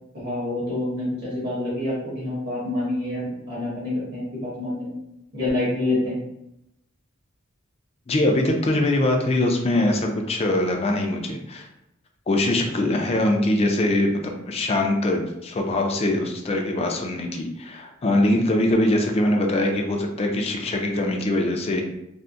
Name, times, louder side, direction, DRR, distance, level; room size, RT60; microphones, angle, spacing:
voice 1, 0.1-4.9 5.3-6.3 12.8-12.9, left 2 dB, 50° right, -7 dB, 1.4 m, -27 dB
voice 2, 8.1-11.7 12.3-21.8, left 1 dB, 30° left, 2 dB, 0.4 m, -22 dB
3.5 x 2.0 x 2.5 m, 0.83 s
head